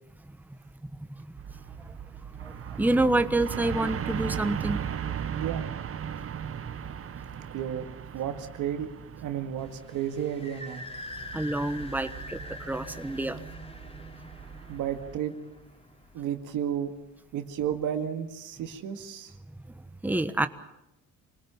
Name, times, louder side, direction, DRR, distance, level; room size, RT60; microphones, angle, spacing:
sound 1, 1.4-15.2, right 8 dB, 50° right, 1.1 m, -38 dB
voice 1, 2.3-4.8 11.3-13.4 19.7-20.5, right 2 dB, 5° right, 9 dB, 1.2 m, -28 dB
voice 2, 5.4-5.7 7.5-7.9 8.1-8.9 9.2-10.8 14.7-15.3 16.1-16.9 17.3-19.3, right 9 dB, 90° right, 6 dB, 2.0 m, -32 dB
sound 2, 9.6-16.9, left 1 dB, 20° left, 3.4 m, -44 dB
25.5 x 19.0 x 7.2 m, 0.88 s
cardioid pair, 90°, 30 cm